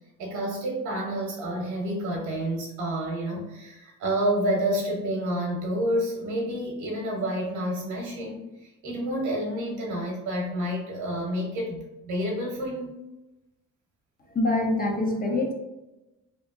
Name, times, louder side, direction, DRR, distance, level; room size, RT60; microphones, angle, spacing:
voice 1, 0.2-12.9, right 1 dB, 75° right, -1 dB, 0.8 m, -29 dB
voice 2, 14.3-15.5, left 2 dB, 30° left, 1 dB, 0.6 m, -24 dB
2.8 x 2.5 x 2.3 m, 0.97 s
cardioid pair, 90°, 30 cm